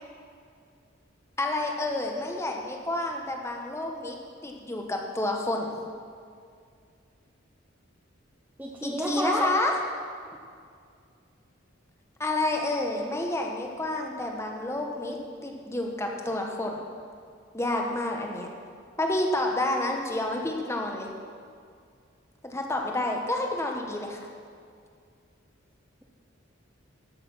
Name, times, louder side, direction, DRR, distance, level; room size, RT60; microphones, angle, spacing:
voice 1, 1.4-4.2 4.4-5.8 8.8-9.8 12.2-15.2 15.4-16.8 17.5-18.5 19.0-21.1 22.4-24.2, left 1 dB, 15° left, 1 dB, 1.0 m, -29 dB
voice 2, 8.6-9.5, equal, 10° right, -1 dB, 0.7 m, -29 dB
13.5 x 6.6 x 5.6 m, 2.2 s
head